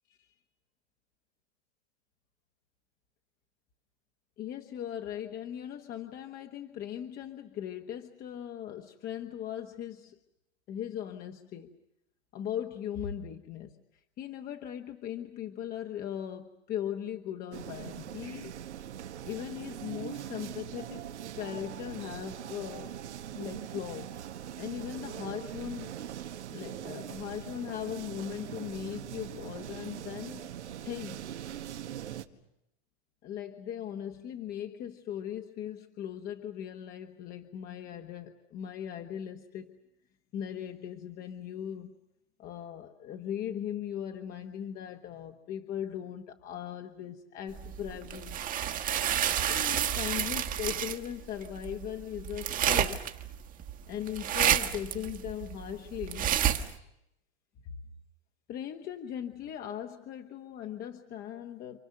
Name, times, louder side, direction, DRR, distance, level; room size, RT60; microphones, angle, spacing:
voice 1, 4.4-10.1 10.7-11.8 12.3-13.7 14.2-18.5 19.2-21.0 21.3-23.0 23.3-24.2 24.6-25.9 26.5-30.5 30.8-31.3 33.2-39.8 40.3-42.0 42.4-48.4 49.4-53.0 53.9-56.3 58.5-61.8, left 10 dB, 25° left, 6 dB, 1.2 m, -39 dB
sound 1, 17.5-32.3, right 10 dB, 90° right, 1.8 m, -41 dB
sound 2, 47.6-56.8, right 10 dB, 25° right, 1.4 m, -30 dB
29.0 x 28.5 x 6.6 m, 0.84 s
supercardioid pair, 145°, 34 cm